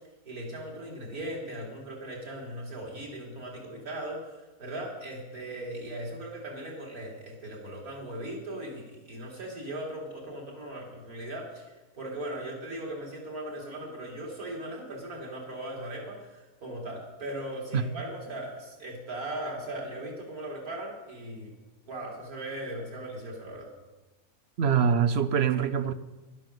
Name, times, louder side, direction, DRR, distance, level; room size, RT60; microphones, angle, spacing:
voice 1, 0.2-21.5 21.9-23.7, right 1 dB, 80° right, 3.5 m, -38 dB
voice 2, 24.6-25.9, right 7 dB, 60° right, 0.7 m, -24 dB
12.0 x 11.0 x 6.6 m
omnidirectional pair, 1.5 m